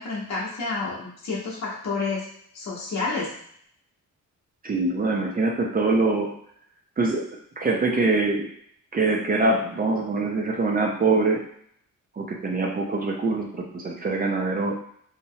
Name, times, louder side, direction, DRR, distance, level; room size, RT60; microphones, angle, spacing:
voice 1, 0.0-2.3 2.5-3.3, left 3 dB, 55° left, -4 dB, 0.8 m, -29 dB
voice 2, 4.6-6.3 7.0-7.2 7.6-8.5 8.9-11.4 12.2-14.8, right 3 dB, 30° right, 1 dB, 0.4 m, -24 dB
3.0 x 2.0 x 2.6 m, 0.65 s
wide cardioid pair, 165°, 32 cm